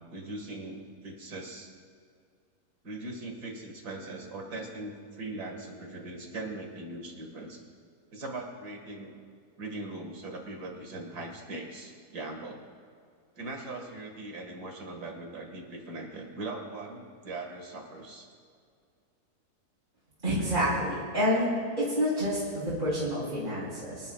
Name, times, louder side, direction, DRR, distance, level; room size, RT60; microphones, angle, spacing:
voice 1, 0.1-1.7 2.8-7.6 8.1-9.1 9.6-12.6 13.4-18.3, right 2 dB, 85° right, 2 dB, 2.5 m, -40 dB
voice 2, 20.2-21.5 21.8-24.1, equal, 35° right, -10 dB, 4.0 m, -28 dB
25.5 x 11.5 x 2.4 m, 2.2 s
omnidirectional pair, 1.7 m